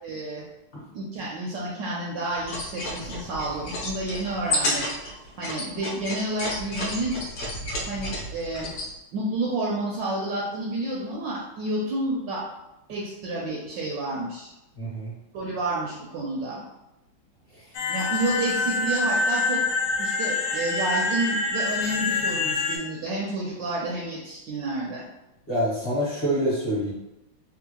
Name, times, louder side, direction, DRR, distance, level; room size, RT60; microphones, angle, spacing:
voice 1, 0.0-0.4 0.9-4.9 5.4-7.2 7.9-8.7 9.1-12.4 12.9-14.5 15.3-16.6 17.9-19.6 20.0-25.1, right 2 dB, 80° right, -3 dB, 1.0 m, -30 dB
sound 1, 2.4-8.9, left 1 dB, 65° left, 1.2 m, -31 dB
voice 2, 14.8-15.1 17.5-17.7 25.5-26.9, equal, 40° left, -8 dB, 0.8 m, -26 dB
sound 2, 17.7-22.8, left 3 dB, 85° left, 0.9 m, -26 dB
3.6 x 2.3 x 2.9 m, 0.93 s
omnidirectional pair, 2.4 m